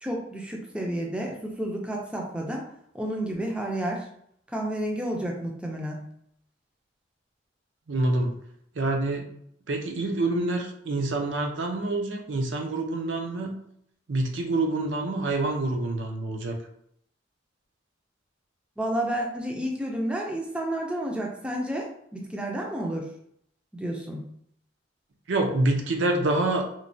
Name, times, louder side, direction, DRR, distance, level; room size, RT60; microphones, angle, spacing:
voice 1, 0.0-2.6 2.9-4.1 4.5-6.0 18.8-23.1 23.7-24.2, right 1 dB, 5° right, -1 dB, 0.4 m, -31 dB
voice 2, 7.9-8.3 8.8-9.3 9.7-13.6 14.1-16.5 25.3-26.7, right 2 dB, 75° right, 3 dB, 0.5 m, -26 dB
3.0 x 2.1 x 2.6 m, 0.69 s
head